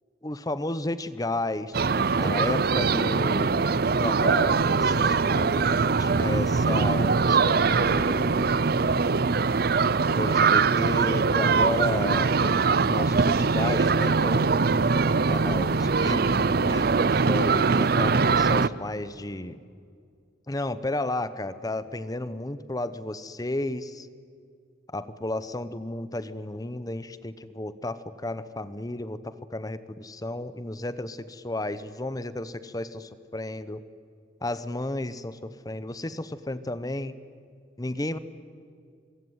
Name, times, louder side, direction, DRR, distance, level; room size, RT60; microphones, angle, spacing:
voice 1, 0.2-3.7 4.0-8.5 10.1-14.7 15.3-19.6 20.5-24.1 24.9-33.8 34.4-37.1 37.8-38.2, left 1 dB, 20° left, 14 dB, 0.9 m, -33 dB
sound 1, 1.7-18.7, right 4 dB, 60° right, 0.6 m, -22 dB
24.5 x 23.5 x 9.5 m, 2.2 s
head